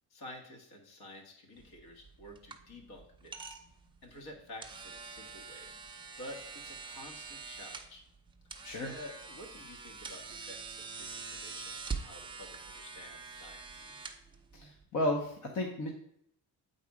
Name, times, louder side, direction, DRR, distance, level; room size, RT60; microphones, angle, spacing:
voice 1, 0.1-3.6 4.0-5.7 6.2-8.0 8.8-13.9, left 1 dB, 70° left, 1 dB, 1.9 m, -50 dB
sound 1, 1.6-14.8, right 4 dB, 15° right, 0.5 m, -45 dB
voice 2, 14.5-15.9, left 1 dB, 50° left, 1 dB, 0.9 m, -33 dB
8.4 x 4.1 x 4.9 m, 0.71 s
cardioid pair, 160°, 39 cm